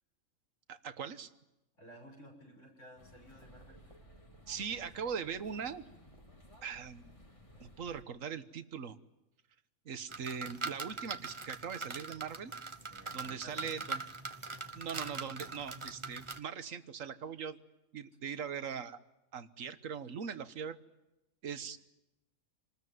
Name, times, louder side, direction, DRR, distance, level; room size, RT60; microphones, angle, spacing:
voice 1, 0.7-1.3 4.5-5.8 6.6-7.1 7.6-9.0 9.8-12.5 13.1-14.0 14.7-17.6 17.9-19.0 19.3-20.8 21.4-21.8, right 7 dB, 65° right, 11 dB, 1.6 m, -41 dB
voice 2, 1.8-4.0 12.9-13.7 18.2-18.4, equal, 55° left, 2 dB, 6.5 m, -55 dB
sound 1, 3.0-8.0, equal, 20° left, 2.5 m, -57 dB
sound 2, 10.1-16.4, right 3 dB, 25° right, 1.1 m, -42 dB
27.0 x 20.0 x 9.4 m, 0.95 s
omnidirectional pair, 1.5 m